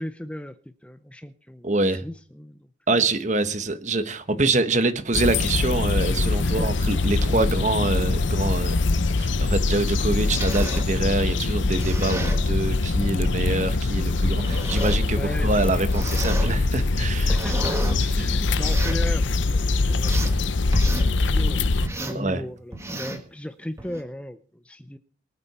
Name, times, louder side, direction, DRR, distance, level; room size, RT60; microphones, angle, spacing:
voice 1, 0.0-2.7 6.4-6.7 15.2-15.8 17.2-20.6 20.8-25.0, left 1 dB, 5° left, 0.6 m, -36 dB
voice 2, 1.6-2.0 2.9-8.8 9.2-17.3 18.0-18.3 22.1-22.4, right 2 dB, 40° right, 1.2 m, -25 dB
sound 1, 5.1-21.9, left 3 dB, 75° left, 0.7 m, -23 dB
sound 2, 10.0-10.9 11.6-12.4 13.3-13.5 14.2-15.1 15.8-16.5 17.0-18.0 18.5-19.0 19.6-20.4 20.7-21.1 21.8-22.2 22.7-23.3 23.8-24.0, right 2 dB, 15° right, 1.8 m, -33 dB
23.5 x 8.9 x 4.3 m
head